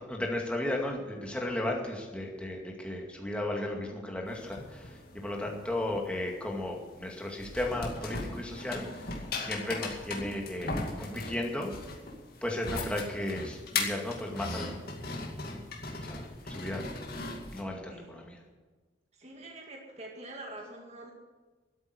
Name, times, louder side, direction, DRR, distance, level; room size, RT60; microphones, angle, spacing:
voice 1, 0.0-11.7 12.4-14.8 15.4-15.6 16.0-16.9 17.5-18.4, left 1 dB, 5° left, 0 dB, 2.2 m, -35 dB
sound 1, 4.3-17.6, left 3 dB, 50° left, 2.3 m, -39 dB
voice 2, 19.1-21.1, right 2 dB, 35° right, 0 dB, 2.1 m, -45 dB
12.5 x 9.0 x 9.8 m, 1.3 s
head